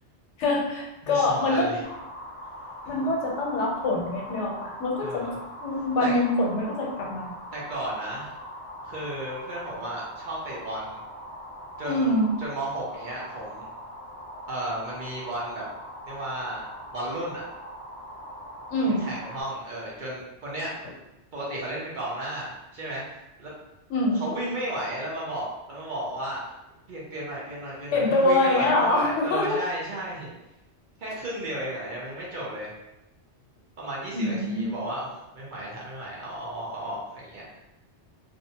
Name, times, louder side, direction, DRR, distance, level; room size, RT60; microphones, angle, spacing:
voice 1, 0.4-1.7 2.9-5.3 5.6-7.3 11.8-12.3 18.7-19.0 23.9-24.2 27.9-29.6 34.1-34.7, left 2 dB, 85° left, -2 dB, 1.0 m, -24 dB
voice 2, 1.0-1.8 5.0-5.4 6.0-6.2 7.5-8.3 8.8-11.0 11.8-12.1 12.4-13.7 14.5-15.6 16.1-17.4 19.0-20.7 21.3-23.5 24.1-26.6 26.9-30.3 31.0-32.7 33.8-35.1 35.3-37.5, right 1 dB, 50° right, -6 dB, 0.8 m, -34 dB
sound 1, 1.8-19.4, equal, 45° left, 0.4 m, -42 dB
2.6 x 2.1 x 2.7 m, 0.94 s
omnidirectional pair, 1.2 m